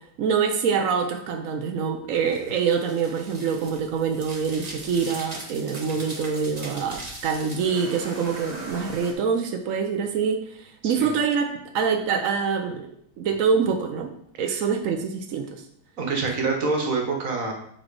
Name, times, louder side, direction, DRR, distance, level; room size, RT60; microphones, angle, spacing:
voice 1, 0.2-11.5 11.7-12.9 13.2-14.1 14.4-15.5, right 6 dB, 75° right, 4 dB, 0.7 m, -25 dB
sound 1, 2.1-9.1, right 1 dB, 30° right, 0.8 m, -40 dB
voice 2, 16.0-17.5, right 4 dB, 45° right, 1 dB, 1.5 m, -26 dB
7.7 x 4.3 x 4.7 m, 0.68 s
omnidirectional pair, 2.2 m